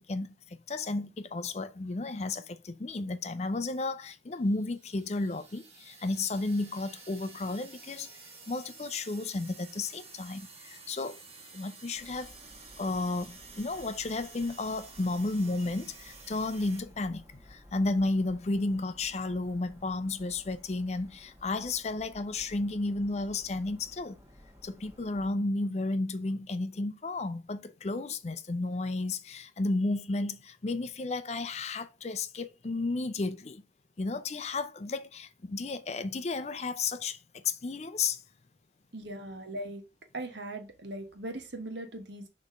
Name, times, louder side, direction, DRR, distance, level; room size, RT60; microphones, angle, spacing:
voice 1, 0.0-11.2 11.5-12.3 12.8-24.2 24.6-33.6 34.0-38.2, left 3 dB, 35° left, 0.5 m, -33 dB
sound 1, 4.4-16.8, right 4 dB, 35° right, 1.5 m, -51 dB
sound 2, 11.9-25.3, equal, 15° right, 1.6 m, -56 dB
voice 2, 38.9-39.8 40.1-42.3, right 1 dB, 70° right, 1.3 m, -39 dB
6.6 x 3.1 x 5.2 m
head